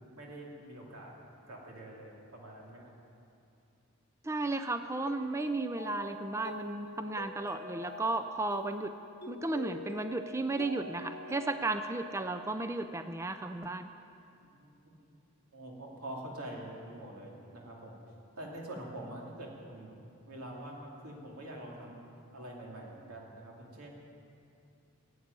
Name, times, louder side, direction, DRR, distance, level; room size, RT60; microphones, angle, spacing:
voice 1, 0.2-1.1 1.5-2.9 6.9-7.0 14.4-14.9 15.5-20.0 20.3-22.0 22.3-23.9, right 1 dB, 80° right, -1 dB, 2.7 m, -45 dB
voice 2, 4.2-8.9 9.3-13.9, right 2 dB, 10° right, 9 dB, 0.4 m, -34 dB
Mallet percussion, 5.1-13.2, left 2 dB, 40° left, 1.0 m, -46 dB
15.5 x 8.1 x 9.6 m, 2.6 s
head